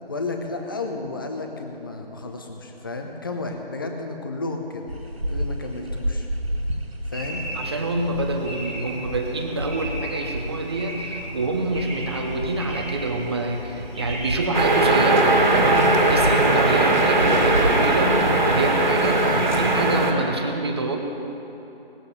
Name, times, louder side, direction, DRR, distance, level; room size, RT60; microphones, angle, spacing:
voice 1, 0.1-4.9 5.3-6.3 7.1-7.5 19.2-19.6, left 3 dB, 20° left, 3 dB, 0.9 m, -32 dB
sound 1, 4.9-17.8, equal, 75° right, 1.9 m, -32 dB
sound 2, 7.1-19.6, right 1 dB, 5° right, 0.7 m, -35 dB
voice 2, 7.5-18.2 18.5-19.3 19.5-21.0, right 2 dB, 25° right, 3 dB, 1.0 m, -26 dB
sound 3, 14.5-20.1, right 2 dB, 45° right, 2.1 m, -19 dB
19.5 x 7.9 x 6.9 m, 2.9 s
figure-of-eight pair, 165°, 31 cm